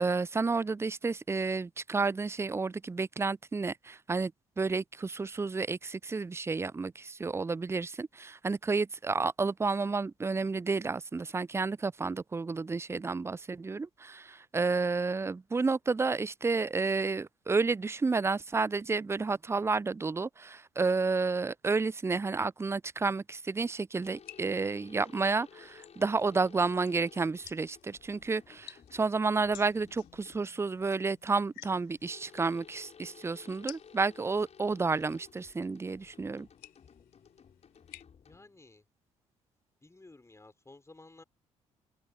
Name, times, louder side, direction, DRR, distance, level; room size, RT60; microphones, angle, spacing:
voice 1, 0.0-4.3 4.6-36.5, right 4 dB, 15° right, 0.5 m, -31 dB
sound 1, 24.0-30.6 32.0-38.7, left 7 dB, 40° left, 6.2 m, -56 dB
sound 2, 24.1-38.0, left 19 dB, 65° left, 5.9 m, -56 dB
voice 2, 38.3-38.9 39.8-41.2, left 2 dB, 15° left, 5.3 m, -54 dB
open air
figure-of-eight pair, 45°, 17 cm